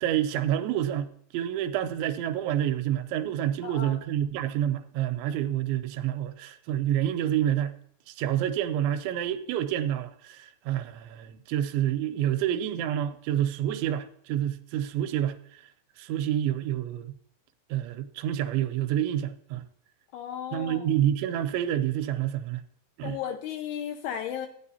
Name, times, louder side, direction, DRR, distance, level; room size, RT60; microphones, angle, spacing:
voice 1, 0.0-7.7 8.1-15.6 16.0-17.2 17.7-19.6 20.5-22.6 23.0-23.2, right 11 dB, 90° right, 3.0 m, -28 dB
voice 2, 3.6-4.0 20.1-20.9 23.0-24.5, left 9 dB, 80° left, 2.4 m, -35 dB
15.0 x 9.6 x 2.8 m
omnidirectional pair, 5.2 m